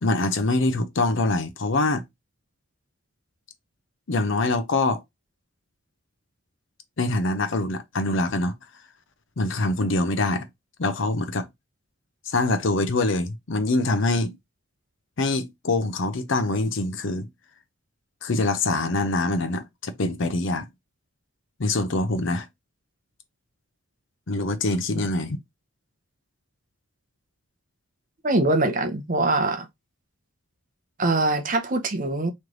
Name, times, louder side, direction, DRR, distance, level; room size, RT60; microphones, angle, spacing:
voice 1, 0.0-2.0 4.1-5.0 7.0-8.6 9.4-10.5 10.8-11.5 12.3-14.4 15.2-17.3 18.2-20.7 21.6-22.5 24.3-25.4, left 2 dB, 60° left, 0.7 m, -24 dB
voice 2, 28.2-29.7 31.0-32.3, right 2 dB, 40° right, 0.8 m, -23 dB
3.2 x 3.2 x 3.8 m
head